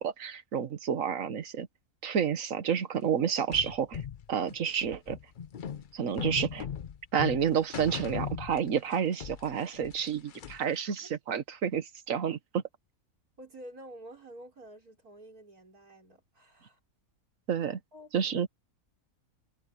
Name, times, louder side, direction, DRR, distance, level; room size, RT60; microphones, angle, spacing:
voice 1, 0.0-1.7 2.0-4.0 4.3-5.2 5.9-6.7 7.1-12.6 17.5-17.8 18.1-18.5, right 8 dB, 65° right, 1.6 m, -30 dB
sound 1, 3.5-9.0 9.2-10.8, left 8 dB, 50° left, 0.6 m, -38 dB
voice 2, 13.4-16.8 17.6-18.1, right 1 dB, 80° right, 5.4 m, -50 dB
omnidirectional pair, 1.5 m